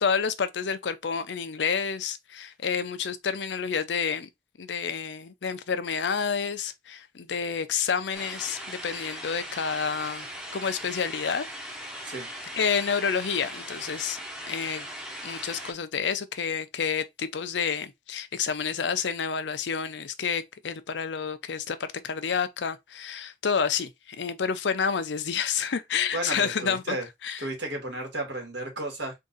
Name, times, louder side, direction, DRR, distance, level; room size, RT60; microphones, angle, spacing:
voice 1, 0.0-4.3 4.6-10.3 10.5-11.5 12.5-14.2 14.5-14.9 15.2-27.0 27.2-27.4, left 6 dB, 75° left, 0.5 m, -29 dB
sound 1, 8.1-15.7, equal, 5° right, 0.8 m, -39 dB
voice 2, 26.1-27.1 27.4-29.2, right 2 dB, 70° right, 1.9 m, -33 dB
3.7 x 2.6 x 3.9 m
head